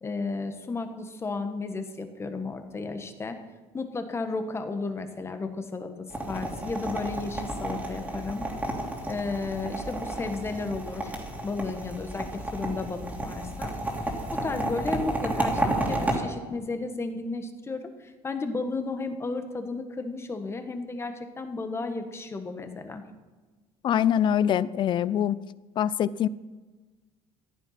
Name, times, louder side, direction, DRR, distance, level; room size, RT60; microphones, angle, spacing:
voice 1, 0.0-3.4 3.7-5.9 6.3-8.4 9.0-11.1 11.4-13.7 14.4-23.0, left 3 dB, 20° left, 8 dB, 1.5 m, -33 dB
sound 1, 6.1-16.2, right 1 dB, 10° right, 3.0 m, -32 dB
voice 2, 23.8-25.4 25.8-26.3, left 9 dB, 40° left, 19 dB, 0.5 m, -24 dB
14.5 x 10.5 x 5.9 m, 1.2 s
cardioid pair, 125°, 12 cm